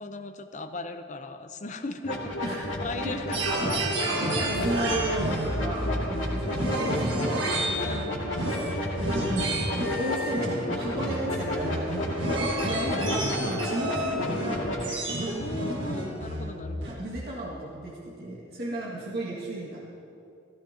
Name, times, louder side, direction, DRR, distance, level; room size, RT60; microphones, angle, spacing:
voice 1, 0.0-4.8 7.8-8.2 12.7-13.2 15.3-17.0, left 3 dB, 40° left, 8 dB, 0.6 m, -38 dB
sound 1, 2.0-14.8, left 1 dB, 90° left, 2.3 m, -32 dB
sound 2, 3.3-16.9, right 1 dB, 75° right, 1.6 m, -30 dB
voice 2, 4.4-8.1 9.3-16.0 16.8-19.9, right 1 dB, 55° right, -7 dB, 1.8 m, -35 dB
15.0 x 15.0 x 2.8 m, 2.7 s
head